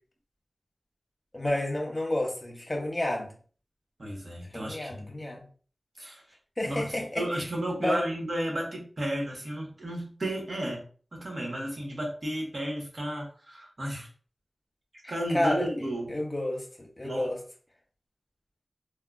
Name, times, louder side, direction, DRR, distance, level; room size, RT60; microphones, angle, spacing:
voice 1, 1.3-3.3 4.5-5.4 6.6-7.3 7.8-8.0 15.0-15.7 16.1-17.4, left 1 dB, 30° left, 0.9 m, -30 dB
voice 2, 4.0-5.1 6.0-6.2 6.6-10.8 11.1-14.1 15.1-16.2 17.0-17.3, right 1 dB, 65° right, 1.1 m, -33 dB
3.7 x 2.2 x 2.3 m
wide cardioid pair, 60°, 0 cm